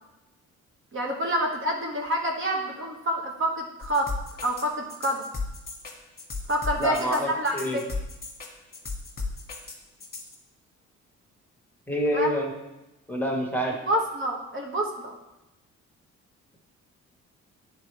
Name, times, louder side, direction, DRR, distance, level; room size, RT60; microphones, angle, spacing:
voice 1, 0.9-4.1 4.4-5.3 6.5-7.8 12.1-12.3 13.7-15.1, equal, 45° right, 0 dB, 1.3 m, -27 dB
sound 1, 3.8-10.4, left 4 dB, 30° left, 1.5 m, -35 dB
voice 2, 6.8-7.8 11.9-12.5 13.1-13.7, equal, 5° left, 0 dB, 1.4 m, -27 dB
9.4 x 4.3 x 3.4 m, 0.95 s
cardioid pair, 90°, 30 cm